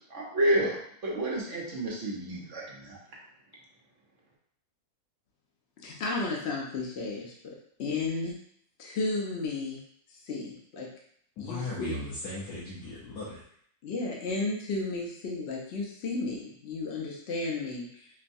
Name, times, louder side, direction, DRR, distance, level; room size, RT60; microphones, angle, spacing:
voice 1, 0.1-0.8 1.0-3.0, right 1 dB, 55° right, -3 dB, 1.1 m, -29 dB
voice 2, 5.8-7.3 7.8-8.4 8.8-9.8 10.2-10.9 11.4-11.9 13.8-18.1, left 3 dB, 55° left, -2 dB, 0.8 m, -33 dB
voice 3, 11.4-13.4, left 2 dB, 85° left, -8 dB, 1.4 m, -37 dB
5.3 x 2.2 x 2.6 m, 0.65 s
omnidirectional pair, 1.7 m